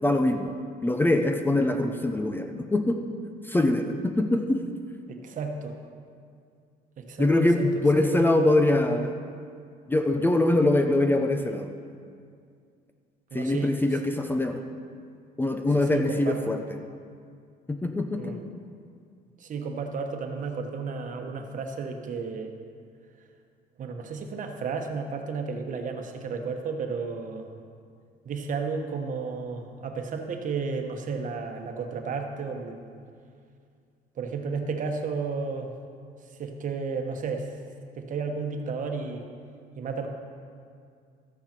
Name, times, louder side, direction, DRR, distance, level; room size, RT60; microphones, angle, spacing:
voice 1, 0.0-0.5 0.8-3.0 3.5-4.6 7.2-9.1 9.9-11.8 13.3-14.6 15.4-16.6 17.7-18.3, left 2 dB, 10° left, 5 dB, 0.6 m, -23 dB
voice 2, 5.1-5.8 7.0-7.7 13.3-13.8 15.8-16.5 18.2-18.4 19.4-22.5 23.8-27.5 28.2-32.8 34.2-35.7 36.4-37.5 38.0-39.2 39.8-40.1, right 5 dB, 50° right, 4 dB, 1.2 m, -33 dB
13.0 x 8.7 x 4.4 m, 2.2 s
cardioid pair, 110°, 17 cm